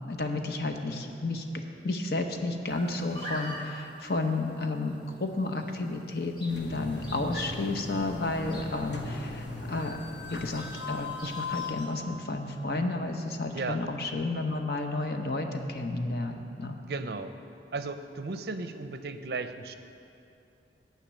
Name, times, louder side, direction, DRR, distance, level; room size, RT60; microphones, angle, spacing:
voice 1, 0.1-1.5 1.8-16.8, left 2 dB, 60° left, 5 dB, 0.8 m, -32 dB
sound 1, 2.7-11.9, left 1 dB, 25° left, 1.2 m, -46 dB
sound 2, 6.5-11.7, left 3 dB, 80° left, 1.1 m, -38 dB
voice 2, 16.8-17.3 17.7-19.7, right 3 dB, 60° right, 9 dB, 0.5 m, -35 dB
10.5 x 5.8 x 8.7 m, 2.7 s
head